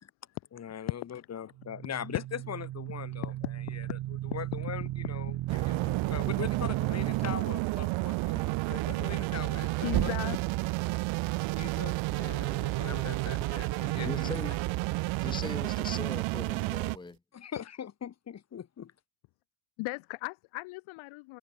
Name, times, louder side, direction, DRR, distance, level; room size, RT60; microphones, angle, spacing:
voice 1, 0.5-10.4 11.6-14.7 17.3-18.9, left 8 dB, 30° left, 3.6 m, -41 dB
sound 1, 1.6-7.3 9.9-10.6, right 14 dB, 45° right, 1.5 m, -35 dB
sound 2, 5.5-17.0, right 22 dB, 65° right, 1.3 m, -31 dB
voice 2, 9.8-10.4 13.4-13.5 19.8-21.4, left 24 dB, 70° left, 1.4 m, -36 dB
voice 3, 14.0-14.6 15.2-17.2, left 3 dB, 10° left, 1.5 m, -40 dB
cardioid pair, 155°, 50 cm